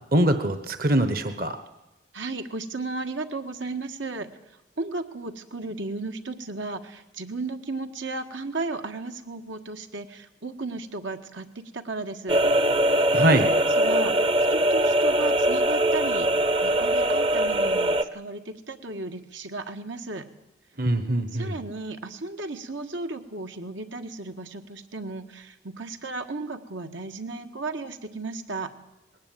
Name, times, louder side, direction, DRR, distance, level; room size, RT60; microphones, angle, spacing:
voice 1, 0.1-1.6 13.1-13.5 20.8-21.5, right 1 dB, 50° right, 10 dB, 1.2 m, -22 dB
voice 2, 2.1-4.3 4.8-12.4 13.0-13.4 13.8-16.3 16.6-20.2 21.3-28.7, right 3 dB, 80° right, 6 dB, 1.7 m, -34 dB
sound 1, 12.3-18.0, right 1 dB, 25° right, 0.7 m, -22 dB
20.0 x 18.0 x 9.1 m, 0.93 s
head